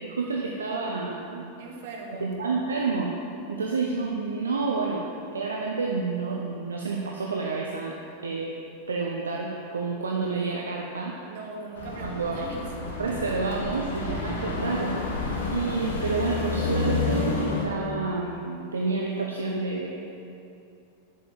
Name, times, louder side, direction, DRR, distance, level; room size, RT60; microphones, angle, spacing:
voice 1, 0.0-1.5 2.1-3.1 3.5-5.1 5.3-8.0 8.2-8.6 8.9-11.2 12.0-12.5 13.0-14.9 15.5-19.9, right 4 dB, 70° right, -1 dB, 0.9 m, -29 dB
voice 2, 1.6-2.3 11.3-13.0, right 3 dB, 55° right, -1 dB, 2.0 m, -40 dB
sound 1, 11.8-17.7, left 3 dB, 55° left, 1.8 m, -29 dB
8.2 x 7.4 x 7.3 m, 2.7 s
figure-of-eight pair, 90°, 0 cm